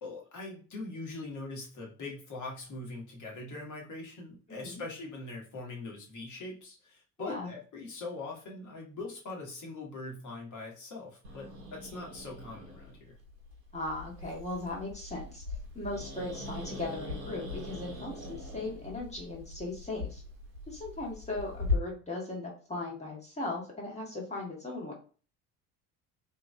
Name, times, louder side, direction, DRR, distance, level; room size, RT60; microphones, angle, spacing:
voice 1, 0.0-13.1, left 2 dB, 40° left, -1 dB, 1.4 m, -42 dB
voice 2, 4.5-4.8 7.2-7.5 13.7-20.2 20.7-24.9, left 2 dB, 15° left, -2 dB, 1.4 m, -38 dB
Growling, 11.2-21.7, left 3 dB, 85° right, 1.0 m, -40 dB
2.9 x 2.7 x 2.2 m, 0.38 s
figure-of-eight pair, 60°, 48 cm